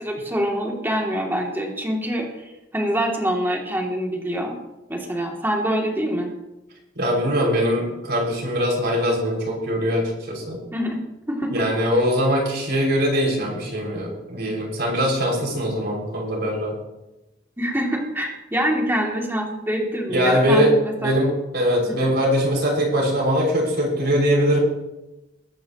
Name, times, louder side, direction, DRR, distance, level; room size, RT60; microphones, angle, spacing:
voice 1, 0.0-2.3 2.7-4.6 4.9-6.3 10.7-11.0 11.3-11.5 17.6-21.1 21.9-22.0, equal, 10° right, 0 dB, 2.5 m, -25 dB
voice 2, 7.0-10.6 11.5-16.8 20.1-20.7 21.0-24.6, equal, 60° right, -2 dB, 5.9 m, -22 dB
22.5 x 11.0 x 3.0 m, 0.99 s
head